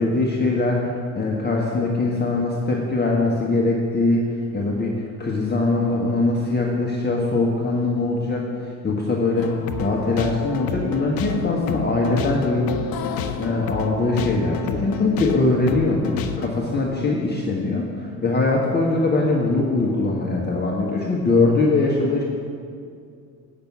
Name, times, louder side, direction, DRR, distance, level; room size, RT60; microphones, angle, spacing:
voice 1, 0.0-9.5 9.8-12.7 13.4-22.2, left 2 dB, 25° left, -2 dB, 1.4 m, -22 dB
sound 1, 9.4-16.5, left 6 dB, 55° left, 0.8 m, -30 dB
8.8 x 6.1 x 6.9 m, 2.3 s
hypercardioid pair, 65°, 42 cm